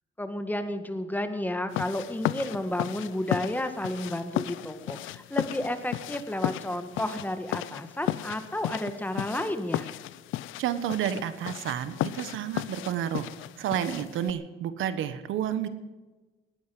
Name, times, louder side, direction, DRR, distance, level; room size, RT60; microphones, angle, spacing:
voice 1, 0.2-9.9, left 1 dB, 10° left, 8 dB, 1.8 m, -32 dB
sound 1, 1.7-14.3, left 15 dB, 90° left, 0.5 m, -35 dB
voice 2, 10.6-13.3 13.6-15.7, right 10 dB, 85° right, 12 dB, 1.3 m, -30 dB
18.5 x 9.4 x 7.7 m, 1.2 s
cardioid pair, 90°, 20 cm